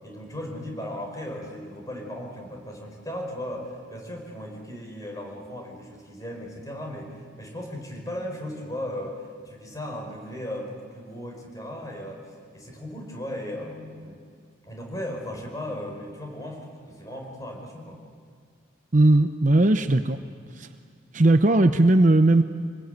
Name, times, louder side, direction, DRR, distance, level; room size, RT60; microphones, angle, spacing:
voice 1, 0.0-14.2 14.7-18.0, left 1 dB, 20° left, 0 dB, 5.1 m, -36 dB
voice 2, 18.9-20.2 20.6-20.7 21.1-22.4, right 2 dB, 40° right, 8 dB, 0.8 m, -18 dB
26.5 x 20.5 x 9.2 m, 2.2 s
head